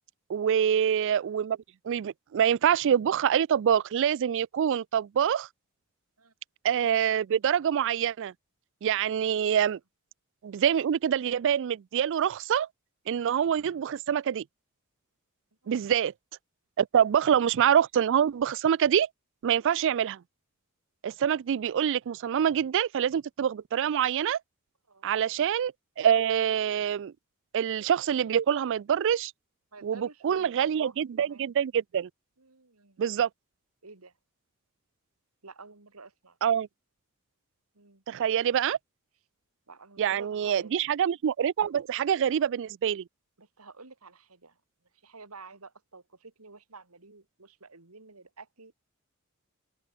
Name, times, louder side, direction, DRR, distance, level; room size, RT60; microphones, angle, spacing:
voice 1, 0.3-1.6 1.8-5.5 6.6-8.3 8.8-9.8 10.4-12.7 13.1-14.4 15.7-16.1 16.8-19.1 19.4-20.2 21.0-24.4 25.0-27.1 27.5-29.3 29.8-32.1 33.0-33.3 36.4-36.7 38.1-38.8 40.0-43.0, right 8 dB, 60° right, 0.3 m, -25 dB
voice 2, 24.9-25.2 29.7-31.5 32.4-33.1 33.8-34.1 35.4-36.4 37.7-38.0 39.7-40.8 43.4-44.6 45.0-48.7, right 3 dB, 85° right, 2.8 m, -50 dB
open air
head